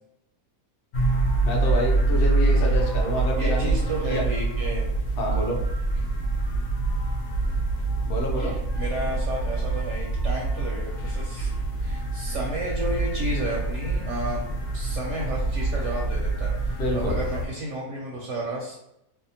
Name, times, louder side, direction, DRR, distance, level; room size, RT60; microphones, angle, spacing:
sound 1, 0.9-17.5, right 2 dB, 75° left, 1.1 m, -25 dB
voice 1, 1.4-4.2 5.2-5.6 8.0-8.5 16.8-17.2, equal, 60° left, -1 dB, 0.6 m, -28 dB
voice 2, 3.4-4.9 7.4-7.6 8.4-11.5 11.8-14.4 14.7-18.7, right 1 dB, 65° right, -3 dB, 0.8 m, -32 dB
2.7 x 2.2 x 2.7 m, 0.81 s
omnidirectional pair, 1.6 m